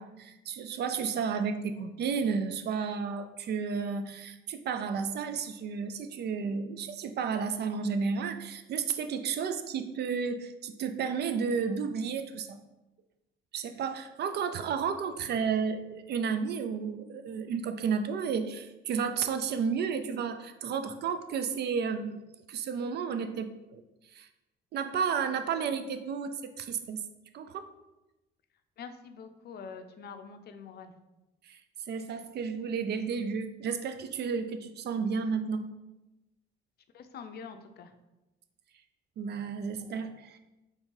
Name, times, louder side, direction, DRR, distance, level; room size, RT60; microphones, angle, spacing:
voice 1, 0.0-12.6 13.5-22.2 22.5-23.8 24.1-24.3 24.7-27.0 27.3-27.7 31.4-31.6 31.9-35.7 39.2-40.4, right 6 dB, 60° right, 9 dB, 0.4 m, -32 dB
voice 2, 28.8-30.9 36.9-37.9, left 6 dB, 55° left, 8 dB, 0.5 m, -45 dB
3.7 x 2.7 x 4.5 m, 1.0 s
cardioid pair, 90°, 20 cm